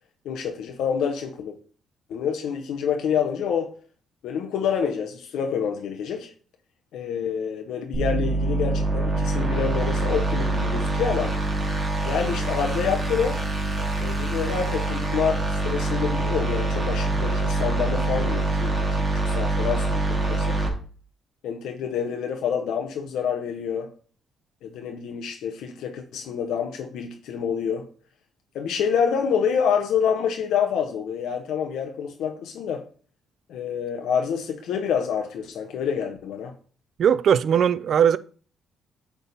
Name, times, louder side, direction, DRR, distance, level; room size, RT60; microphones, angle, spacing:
voice 1, 0.2-1.6 2.1-3.8 4.2-6.3 6.9-11.4 12.0-13.4 14.0-20.6 21.4-23.9 24.6-27.9 28.5-32.8 33.5-36.5, left 7 dB, 80° left, 0.8 m, -27 dB
sound 1, 7.9-20.7, right 2 dB, 35° right, 2.4 m, -25 dB
voice 2, 37.0-38.2, right 8 dB, 60° right, 0.4 m, -19 dB
8.2 x 3.5 x 4.1 m
cardioid pair, 90°, 0 cm